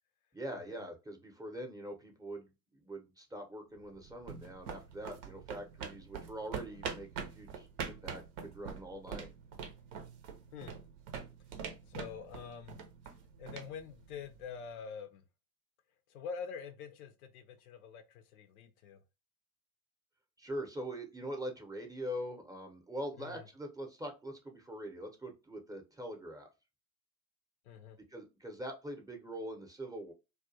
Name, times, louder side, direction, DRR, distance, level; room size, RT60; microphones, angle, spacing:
voice 1, 0.3-9.3 20.4-26.5 28.1-30.1, equal, 10° right, 0.7 m, -43 dB
sound 1, 3.8-14.6, right 6 dB, 70° right, 0.7 m, -45 dB
voice 2, 11.9-12.8 13.4-15.2 16.1-19.0 23.2-23.4 27.7-28.0, left 6 dB, 90° left, 0.6 m, -46 dB
2.3 x 2.2 x 2.6 m
hypercardioid pair, 80°, 42 cm